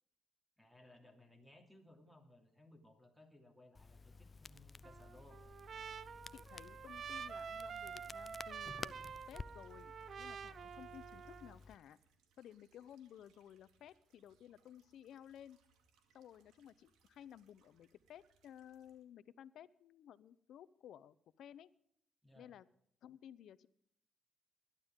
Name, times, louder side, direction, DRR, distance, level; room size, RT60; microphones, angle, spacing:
voice 1, 0.6-5.4 22.2-22.5, left 1 dB, ahead, 4 dB, 3.0 m, -62 dB
Crackle, 3.7-11.7, left 4 dB, 30° left, 0.5 m, -53 dB
Trumpet, 4.8-11.6, right 7 dB, 50° right, 0.6 m, -48 dB
voice 2, 6.3-8.9 9.3-12.0 12.4-15.6 16.1-21.7 22.3-22.7 23.0-23.7, left 10 dB, 75° left, 17 dB, 0.7 m, -56 dB
sound 1, 6.6-19.0, right 5 dB, 85° right, 2.3 m, -76 dB
20.0 x 11.5 x 3.7 m, 0.69 s
cardioid pair, 90°, 0 cm